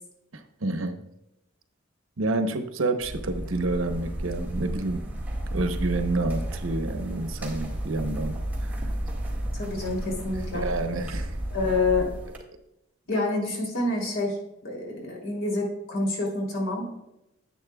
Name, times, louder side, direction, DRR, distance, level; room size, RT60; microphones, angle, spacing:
voice 1, 0.3-1.0 2.2-5.0 5.5-8.8 10.5-11.4, right 2 dB, 85° right, 7 dB, 0.9 m, -29 dB
sound 1, 3.0-12.4, right 1 dB, 10° right, 1.9 m, -32 dB
voice 2, 9.5-10.6 11.5-12.1 13.1-14.4 14.6-16.9, left 2 dB, 75° left, -1 dB, 3.1 m, -27 dB
10.5 x 8.9 x 2.3 m, 0.89 s
head